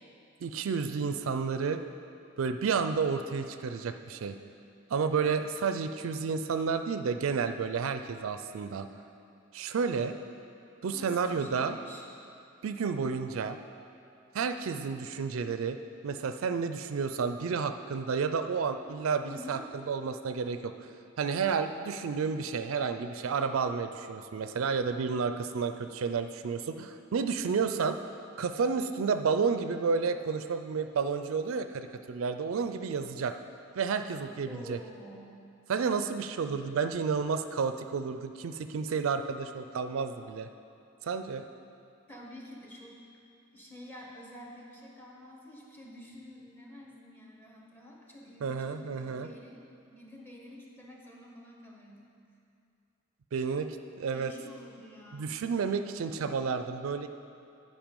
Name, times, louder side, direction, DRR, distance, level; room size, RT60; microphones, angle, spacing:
voice 1, 0.4-1.8 2.4-4.4 4.9-8.9 9.5-10.2 10.8-11.8 12.6-13.6 14.3-15.8 16.0-19.6 19.9-20.9 21.2-28.0 28.4-33.3 33.8-34.8 35.7-40.5 41.0-41.5 48.4-49.3 53.3-53.7 54.0-54.3 55.1-57.1, right 5 dB, 80° right, 9 dB, 0.4 m, -31 dB
voice 2, 10.9-12.0 19.2-19.7 34.5-35.4 37.7-37.8 42.1-43.0 43.5-49.6 49.9-52.1 53.4-53.9 54.1-55.4, left 1 dB, 10° left, -3 dB, 1.3 m, -49 dB
10.0 x 5.4 x 5.3 m, 2.6 s
head